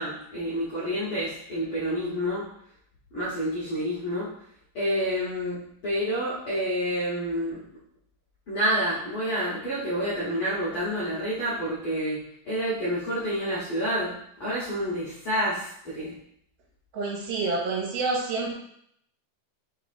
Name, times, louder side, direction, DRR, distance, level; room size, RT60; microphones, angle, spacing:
voice 1, 0.0-2.4 3.1-4.3 4.7-7.6 8.5-12.2 12.4-14.1 14.4-16.1, equal, 85° left, -9 dB, 1.2 m, -28 dB
voice 2, 16.9-18.5, right 3 dB, 75° right, -2 dB, 2.7 m, -28 dB
5.7 x 3.7 x 2.5 m, 0.70 s
omnidirectional pair, 4.7 m